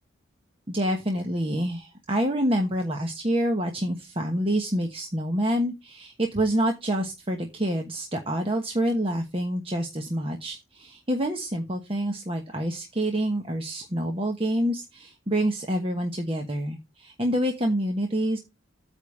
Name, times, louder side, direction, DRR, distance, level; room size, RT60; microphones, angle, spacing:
voice 1, 0.7-18.4, right 1 dB, 30° right, 3 dB, 1.1 m, -27 dB
9.2 x 3.5 x 6.5 m, 0.24 s
head